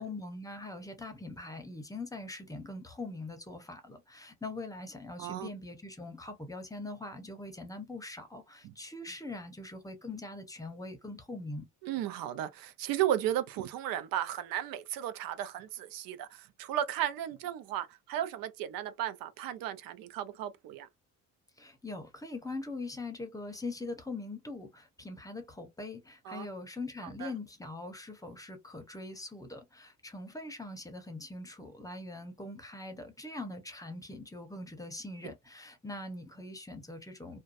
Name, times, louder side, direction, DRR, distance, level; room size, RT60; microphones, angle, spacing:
voice 1, 0.0-11.7 21.6-37.4, left 2 dB, 10° left, 0.7 m, -42 dB
voice 2, 11.8-20.9 26.3-26.5 27.2-27.3, right 11 dB, 85° right, 0.5 m, -34 dB
2.5 x 2.2 x 2.4 m
cardioid pair, 100°, 34 cm